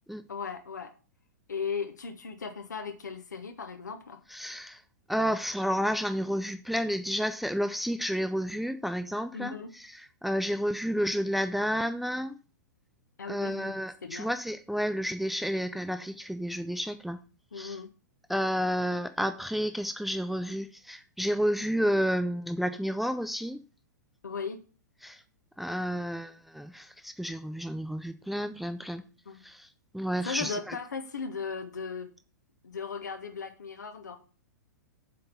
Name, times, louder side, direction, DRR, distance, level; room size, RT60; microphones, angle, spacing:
voice 1, 0.3-0.9 1.5-4.2 9.3-9.7 13.2-14.3 17.5-17.9 24.2-24.6 29.2-29.4 30.2-32.1 32.6-34.2, left 5 dB, 70° left, 1.6 m, -37 dB
voice 2, 4.3-4.8 5.1-9.6 9.9-12.4 13.3-17.2 17.6-17.8 18.3-23.6 25.0-25.2 25.6-29.0 29.4-29.7 29.9-30.8, equal, ahead, 0.5 m, -31 dB
7.6 x 5.3 x 5.7 m
figure-of-eight pair, 105°, 10 cm